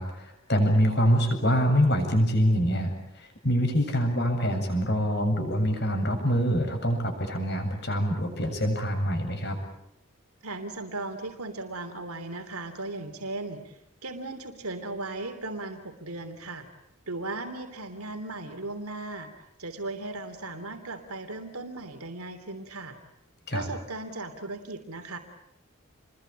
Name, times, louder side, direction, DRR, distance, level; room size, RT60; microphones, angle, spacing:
voice 1, 0.0-9.6 23.5-23.7, equal, 50° left, 5 dB, 7.6 m, -25 dB
voice 2, 10.4-16.7 17.1-23.0 23.5-25.2, right 2 dB, 90° right, 6 dB, 3.2 m, -37 dB
29.0 x 22.5 x 9.0 m, 0.79 s
head